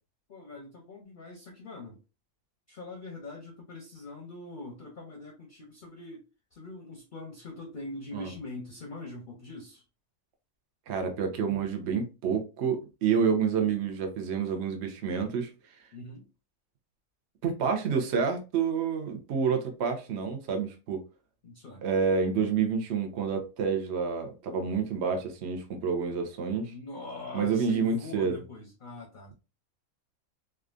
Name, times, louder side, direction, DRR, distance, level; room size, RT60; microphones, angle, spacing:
voice 1, 0.3-2.0 2.7-9.8 15.9-16.3 21.4-21.8 26.7-29.3, left 2 dB, 50° left, 0.6 m, -43 dB
voice 2, 10.9-15.9 17.4-21.0 21.8-26.7 27.3-28.4, right 6 dB, 60° right, 0.9 m, -28 dB
3.4 x 2.4 x 2.4 m
omnidirectional pair, 1.4 m